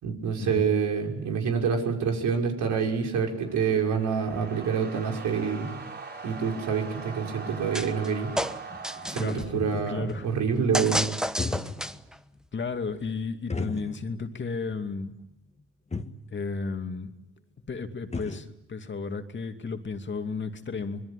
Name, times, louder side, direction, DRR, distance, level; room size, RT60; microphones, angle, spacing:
voice 1, 0.0-5.8 6.2-8.3 9.1-11.0, right 6 dB, 75° right, 2 dB, 5.8 m, -27 dB
sound 1, 3.0-10.1, right 4 dB, 35° right, 4.9 m, -42 dB
sound 2, 7.7-8.1 8.4-9.4 10.7-12.2, equal, ahead, 1.2 m, -30 dB
sound 3, 8.7-10.1 11.2-12.0 12.3-12.4 13.5-14.3 14.6-14.7 15.6-15.7 15.9-16.2 17.6-17.7 17.8-18.5, left 3 dB, 20° left, 1.9 m, -35 dB
voice 2, 9.2-9.5 9.9-10.3 12.5-15.1 16.3-17.1 17.7-21.0, left 4 dB, 40° left, 6 dB, 2.6 m, -33 dB
25.5 x 21.5 x 9.9 m, 0.87 s
cardioid pair, 90°, 30 cm